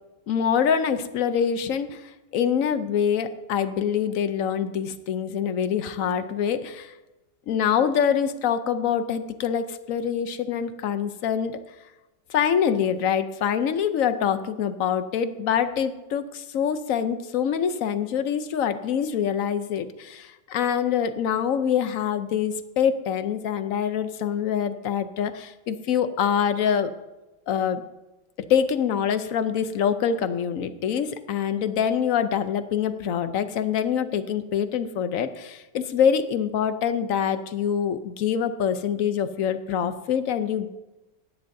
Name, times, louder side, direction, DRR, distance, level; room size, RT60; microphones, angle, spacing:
voice 1, 0.3-6.9 7.5-11.6 12.3-26.9 27.5-27.8 28.5-40.7, left 8 dB, 65° left, 11 dB, 0.9 m, -25 dB
17.0 x 11.5 x 2.7 m, 1.1 s
omnidirectional pair, 1.8 m